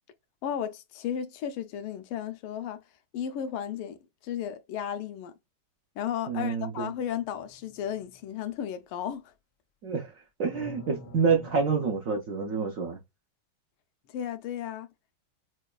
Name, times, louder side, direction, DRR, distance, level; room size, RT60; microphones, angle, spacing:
voice 1, 0.4-2.8 3.1-4.0 4.2-5.3 6.0-9.3 14.1-14.9, left 9 dB, 90° left, 1.5 m, -34 dB
voice 2, 6.3-6.9 9.8-10.1 10.4-13.0, right 5 dB, 85° right, 0.7 m, -27 dB
sound 1, 7.0-8.2 10.5-11.9, left 2 dB, 60° left, 1.3 m, -48 dB
6.0 x 2.3 x 2.2 m
omnidirectional pair, 2.3 m